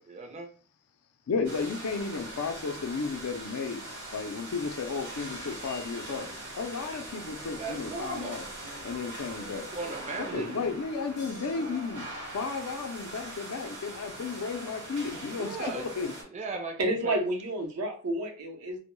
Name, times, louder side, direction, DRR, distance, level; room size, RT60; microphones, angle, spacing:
voice 1, 0.1-0.5 7.6-8.8 9.5-10.7 15.4-15.9 16.2-17.2, right 3 dB, 30° right, 0.5 m, -37 dB
voice 2, 1.3-3.8 4.1-6.3 6.6-8.5 8.8-9.7 10.3-16.1, left 4 dB, 80° left, 0.4 m, -33 dB
sound 1, 1.4-16.2, right 1 dB, 55° right, 0.9 m, -42 dB
voice 3, 16.8-18.8, right 1 dB, 80° right, 0.7 m, -30 dB
2.1 x 2.1 x 3.0 m
head